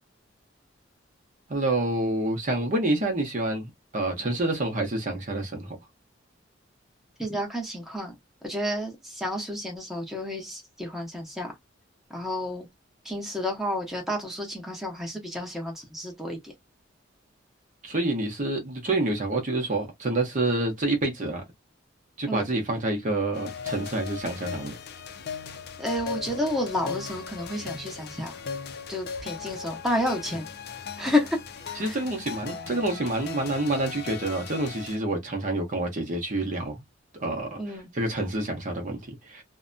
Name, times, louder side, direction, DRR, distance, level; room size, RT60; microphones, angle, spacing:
voice 1, 1.5-5.8 17.8-21.4 22.2-24.7 31.8-36.8 37.2-39.4, right 2 dB, 45° right, 0.7 m, -28 dB
voice 2, 7.2-8.2 8.4-11.5 12.1-12.7 13.0-16.5 22.3-22.5 25.8-28.4 28.9-30.5 31.0-31.4 31.7-32.0 37.6-37.9, left 1 dB, ahead, 0.8 m, -30 dB
sound 1, 23.3-35.0, left 6 dB, 55° left, 0.5 m, -38 dB
2.6 x 2.1 x 2.5 m
head